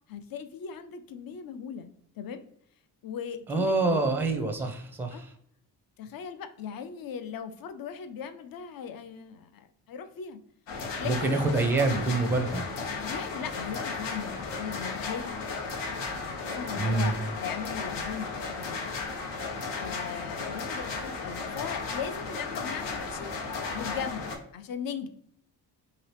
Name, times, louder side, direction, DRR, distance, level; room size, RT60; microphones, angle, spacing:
voice 1, 0.1-1.9 2.2-2.4 3.0-4.1 5.1-5.2 6.0-10.4 11.0-11.4 12.9-15.5 16.1-19.0 19.8-23.3 23.7-25.1, left 7 dB, 55° left, 9 dB, 0.5 m, -39 dB
voice 2, 3.5-5.3 11.0-12.7 16.8-17.1, right 3 dB, 5° right, 6 dB, 0.5 m, -26 dB
sound 1, 10.7-24.4, left 4 dB, 90° left, 0.8 m, -35 dB
2.8 x 2.8 x 3.2 m, 0.70 s
cardioid pair, 90°, 42 cm